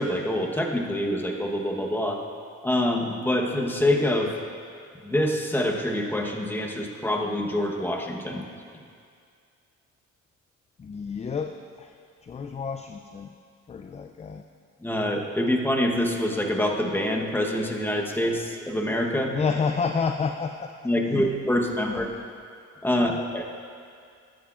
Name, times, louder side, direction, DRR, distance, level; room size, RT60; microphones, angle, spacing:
voice 1, 0.0-2.2 2.6-4.3 5.0-8.4 14.8-19.3 20.8-22.1 22.8-23.5, left 1 dB, 5° left, 1 dB, 1.0 m, -25 dB
voice 2, 10.8-11.9 12.2-13.3 13.7-14.4 19.3-20.7 21.1-22.2 23.0-23.2, left 5 dB, 25° left, 6 dB, 0.4 m, -30 dB
14.0 x 10.0 x 2.5 m, 2.3 s
cardioid pair, 90°, 30 cm